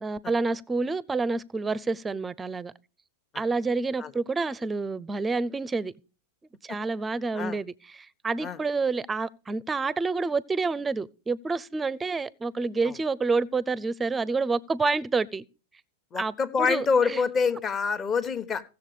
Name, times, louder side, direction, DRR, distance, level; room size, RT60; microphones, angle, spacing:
voice 1, 0.0-2.7 3.3-5.9 6.6-15.4 16.2-17.2, right 4 dB, 15° right, 0.6 m, -28 dB
voice 2, 16.1-18.6, left 5 dB, 30° left, 1.3 m, -26 dB
15.5 x 7.1 x 5.0 m
hypercardioid pair, 115°, 0 cm